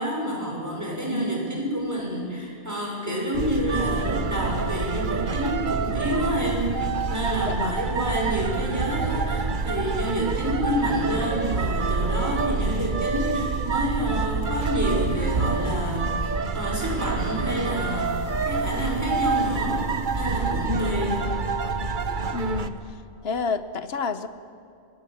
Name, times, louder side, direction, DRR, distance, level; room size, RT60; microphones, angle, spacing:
voice 1, 0.0-21.2, equal, 15° right, -2 dB, 6.2 m, -28 dB
sound 1, 3.3-22.7, right 4 dB, 50° right, 1.1 m, -27 dB
voice 2, 7.4-7.8 20.7-21.2 22.3-22.8 23.2-24.3, left 4 dB, 70° left, 11 dB, 1.2 m, -29 dB
sound 2, 9.6-22.3, equal, 85° right, 4.6 m, -44 dB
25.0 x 21.0 x 7.6 m, 2.6 s
omnidirectional pair, 1.1 m